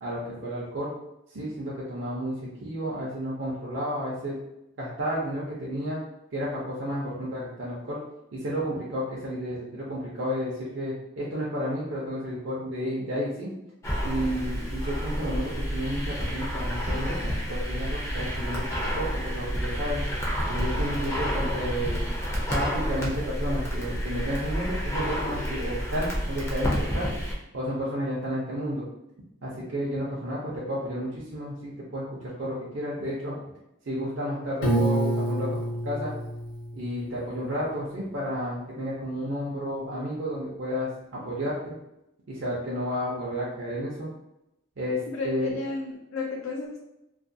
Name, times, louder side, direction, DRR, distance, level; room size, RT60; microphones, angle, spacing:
voice 1, 0.0-1.0 1.3-4.3 4.8-6.0 6.3-8.0 8.3-13.5 14.0-20.0 20.5-22.0 22.5-27.1 27.5-28.9 29.4-33.4 33.9-36.1 36.7-40.9 41.2-41.8 42.3-44.1 44.8-45.6, equal, 65° right, -6 dB, 0.6 m, -31 dB
sound 1, 13.8-27.3, equal, 15° left, 0.4 m, -29 dB
Piano, 34.6-37.5, right 1 dB, 60° left, 0.8 m, -28 dB
voice 2, 45.1-46.8, left 3 dB, 80° left, -1 dB, 0.4 m, -33 dB
2.4 x 2.2 x 2.6 m, 0.87 s
head